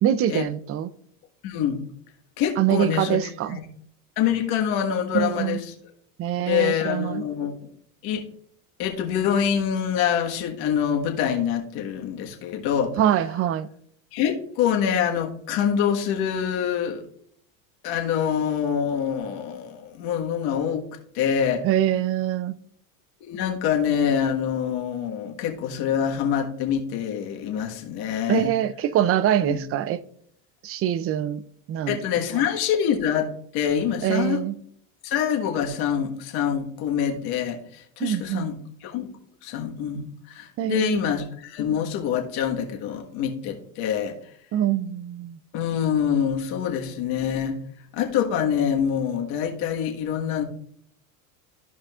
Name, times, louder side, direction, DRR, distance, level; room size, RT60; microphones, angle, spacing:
voice 1, 0.0-0.9 2.6-3.6 5.1-5.6 6.2-7.2 13.0-13.7 21.6-22.6 28.3-30.0 30.6-31.4 31.7-32.0 34.0-34.5 38.0-38.5 40.6-41.1 44.5-45.4, right 11 dB, 35° right, 0.4 m, -24 dB
voice 2, 1.4-1.8 2.4-3.6 4.2-5.7 6.4-7.5 8.0-8.3 8.8-12.9 14.1-17.0 17.8-20.8 21.1-21.6 23.3-28.5 29.4-29.6 31.9-34.4 35.0-38.6 38.8-39.1 39.4-44.2 45.5-47.6 47.9-50.4, left 8 dB, 60° left, 1.5 m, -25 dB
14.0 x 5.0 x 2.4 m
supercardioid pair, 120°, 41 cm